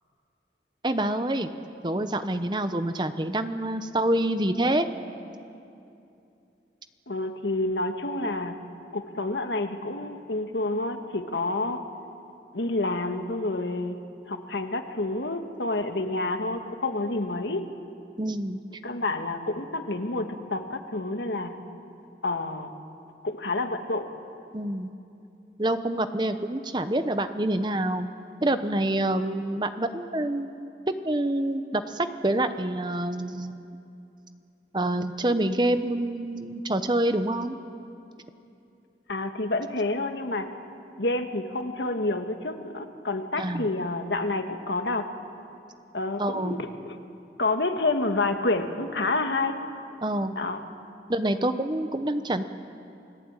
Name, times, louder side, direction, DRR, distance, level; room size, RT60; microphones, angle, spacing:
voice 1, 0.8-1.5 1.8-4.9 18.2-18.6 24.5-24.9 25.6-28.1 28.4-30.6 31.0-33.6 34.7-37.6 43.4-43.7 46.2-46.6 50.0-50.3 51.1-52.4, right 1 dB, 25° right, 10 dB, 0.9 m, -27 dB
voice 2, 7.1-8.5 8.9-11.8 12.5-14.0 14.3-17.6 18.8-21.6 22.2-22.7 23.2-24.1 39.1-40.5 41.0-45.1 45.9-47.0 47.4-49.6 50.4-50.6, left 2 dB, 80° left, 6 dB, 1.8 m, -28 dB
29.0 x 18.5 x 9.0 m, 2.7 s
head